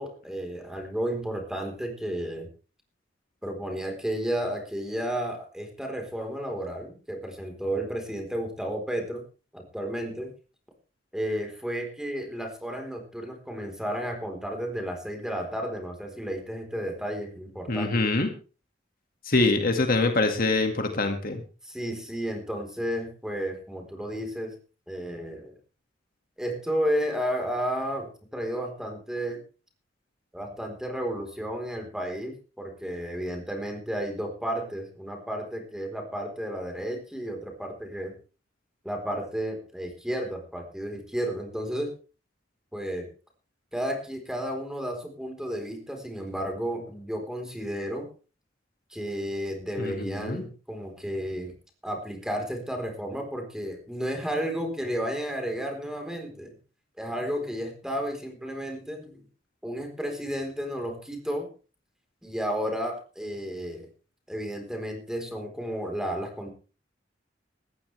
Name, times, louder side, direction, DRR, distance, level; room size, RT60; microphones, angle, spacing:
voice 1, 0.0-2.5 3.4-9.2 9.5-10.3 11.1-17.9 19.4-19.5 21.6-24.6 24.9-25.5 26.4-29.4 30.3-38.1 38.8-41.9 42.7-43.1 43.7-48.1 48.9-51.5 51.8-56.5 57.0-59.2 59.6-61.5 62.2-63.9 64.3-66.5, equal, 5° right, 3 dB, 4.0 m, -32 dB
voice 2, 17.7-18.3 19.3-21.4 49.8-50.4, left 2 dB, 50° left, 5 dB, 2.0 m, -24 dB
19.0 x 14.5 x 3.4 m, 0.35 s
head